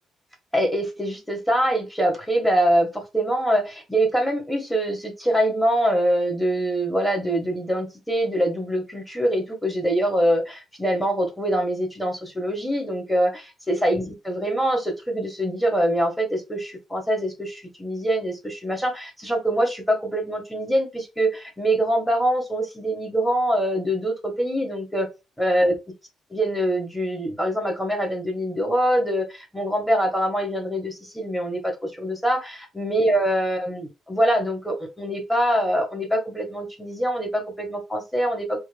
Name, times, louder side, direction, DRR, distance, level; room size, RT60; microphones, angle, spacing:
voice 1, 0.5-25.1 25.4-25.8 26.3-38.6, right 1 dB, 5° left, 1.5 m, -24 dB
4.3 x 2.3 x 3.4 m
cardioid pair, 90°, 0 cm